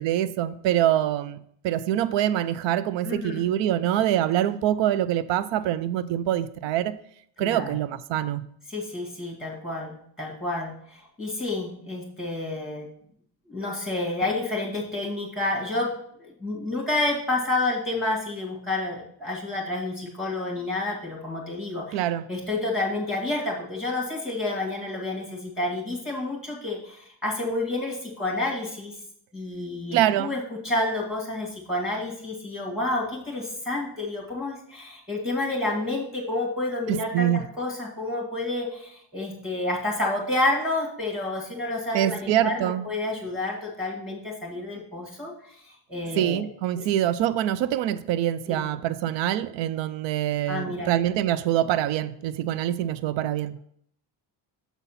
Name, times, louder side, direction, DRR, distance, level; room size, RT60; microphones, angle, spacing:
voice 1, 0.0-7.0 7.4-8.5 21.9-22.3 29.9-30.3 36.9-37.4 41.9-42.8 46.2-53.6, right 12 dB, 75° right, 0.5 m, -25 dB
voice 2, 3.0-3.5 7.4-7.7 8.7-12.9 13.5-15.9 16.2-22.0 22.3-28.9 29.3-46.4 48.5-48.7 50.5-50.9, left 2 dB, ahead, 1.9 m, -29 dB
7.0 x 4.1 x 5.7 m
cardioid pair, 125°, 45 cm